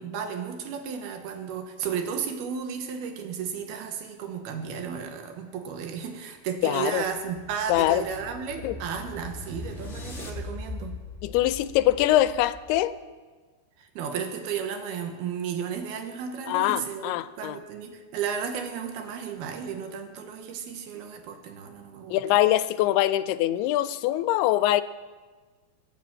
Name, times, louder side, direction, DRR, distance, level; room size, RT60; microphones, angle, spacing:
voice 1, 0.0-11.0 13.8-22.2, right 7 dB, 75° right, 5 dB, 3.2 m, -34 dB
voice 2, 6.6-7.0 7.7-8.0 8.6-8.8 11.2-13.0 16.5-17.6 22.1-24.8, left 14 dB, 85° left, 14 dB, 2.6 m, -23 dB
sound 1, 6.9-13.0, left 2 dB, 40° left, 1.0 m, -40 dB
20.5 x 7.6 x 7.5 m, 1.4 s
omnidirectional pair, 4.6 m